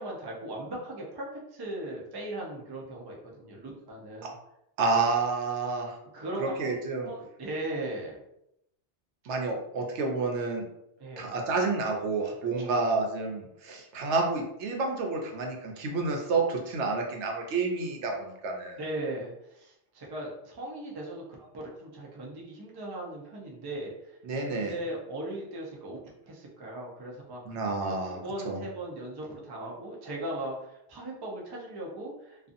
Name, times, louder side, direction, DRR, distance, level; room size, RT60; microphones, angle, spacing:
voice 1, 0.0-4.3 6.1-8.2 9.5-9.6 11.0-11.3 12.6-12.8 18.8-26.0 26.3-27.6 27.9-32.5, right 1 dB, 35° right, -3 dB, 0.4 m, -38 dB
voice 2, 4.8-5.9 6.4-7.1 9.3-10.6 11.2-18.8 24.2-24.7 27.5-28.2 28.4-28.6, right 3 dB, 80° right, 1 dB, 0.9 m, -29 dB
2.5 x 2.4 x 2.5 m, 0.81 s
omnidirectional pair, 1.2 m